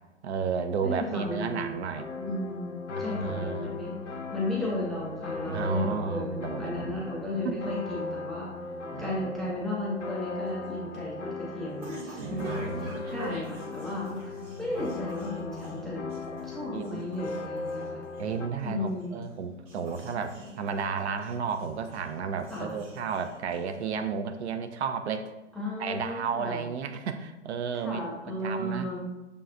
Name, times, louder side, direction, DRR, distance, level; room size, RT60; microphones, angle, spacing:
voice 1, 0.2-2.1 3.0-3.8 5.5-7.0 7.4-7.6 8.9-9.1 12.2-13.0 16.7-17.0 18.2-25.3 25.8-28.0 28.4-28.9, right 6 dB, 65° right, 8 dB, 0.5 m, -32 dB
voice 2, 0.8-1.8 2.2-3.9 4.3-8.5 9.0-12.4 12.7-16.1 16.4-18.0 18.6-19.2 22.5-22.7 25.6-26.6 27.7-29.1, left 1 dB, ahead, -6 dB, 0.4 m, -34 dB
sound 1, 1.9-18.5, left 3 dB, 85° left, 0.6 m, -38 dB
several guns firing, 10.5-24.0, right 2 dB, 25° right, 0.7 m, -46 dB
6.7 x 2.3 x 2.5 m, 1.1 s
figure-of-eight pair, 110°, 35 cm